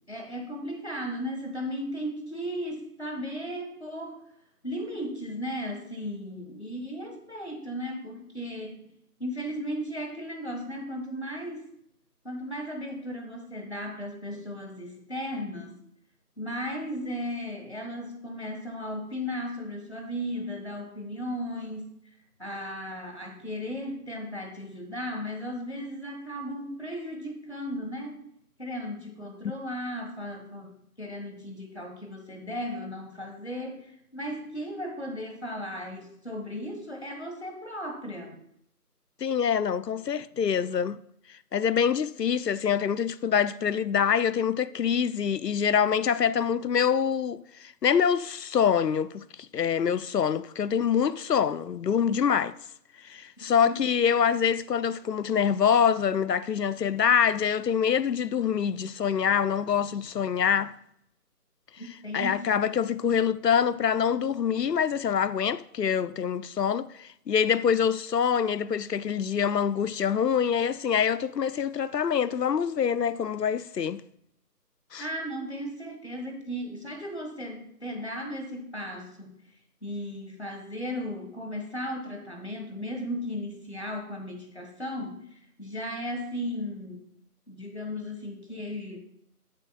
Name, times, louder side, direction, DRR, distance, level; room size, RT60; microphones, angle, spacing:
voice 1, 0.1-4.2 4.6-8.9 9.2-11.7 12.2-15.8 16.4-28.2 28.6-38.4 53.6-53.8 61.8-62.7 75.0-79.3 79.8-87.0 87.5-89.0, equal, 45° left, 1.4 m, -36 dB
voice 2, 39.2-41.0 41.3-49.2 49.5-52.6 53.0-60.7 62.1-74.0 74.9-75.1, left 7 dB, 90° left, 0.6 m, -25 dB
13.0 x 7.5 x 2.3 m
figure-of-eight pair, 175°, 47 cm